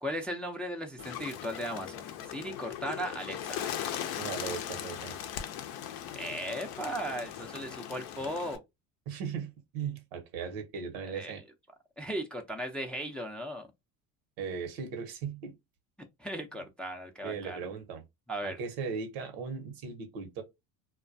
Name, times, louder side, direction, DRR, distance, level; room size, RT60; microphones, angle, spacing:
voice 1, 0.0-3.9 6.1-8.6 11.1-11.3 12.0-13.7 16.2-17.6 18.3-18.6, equal, 5° left, 0.4 m, -37 dB
Bird, 1.0-8.6, left 10 dB, 60° left, 0.6 m, -39 dB
voice 2, 4.2-5.2 9.1-11.4 14.4-15.5 17.2-18.0 18.4-20.4, right 6 dB, 75° right, 0.9 m, -38 dB
2.2 x 2.2 x 2.5 m
hypercardioid pair, 75°, 41 cm